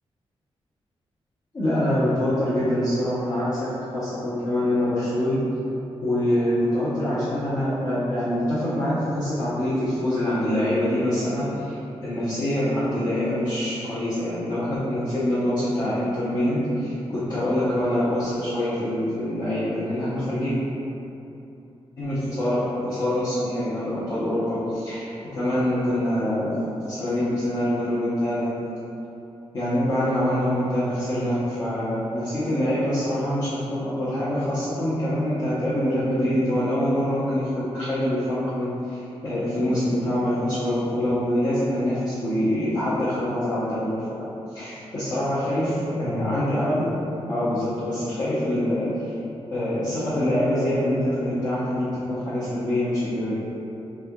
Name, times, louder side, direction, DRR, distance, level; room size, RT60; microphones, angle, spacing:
voice 1, 1.5-3.7 3.9-5.4 6.0-20.6 22.0-26.5 26.8-28.5 29.5-43.9 44.5-46.8 47.2-49.1 49.5-53.3, left 1 dB, 40° left, -12 dB, 0.7 m, -25 dB
3.5 x 3.2 x 2.2 m, 2.9 s
wide cardioid pair, 155°, 11 cm